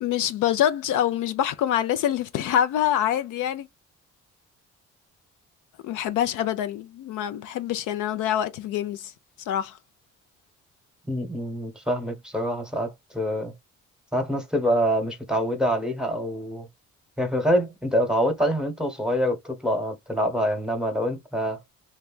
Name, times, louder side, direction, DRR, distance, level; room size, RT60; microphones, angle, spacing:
voice 1, 0.0-3.7 5.8-9.1 9.5-9.8, left 10 dB, 85° left, 0.5 m, -25 dB
voice 2, 11.0-13.5 14.1-16.7 17.2-21.6, equal, ahead, 0.9 m, -25 dB
3.2 x 2.3 x 2.3 m
cardioid pair, 90°, 30 cm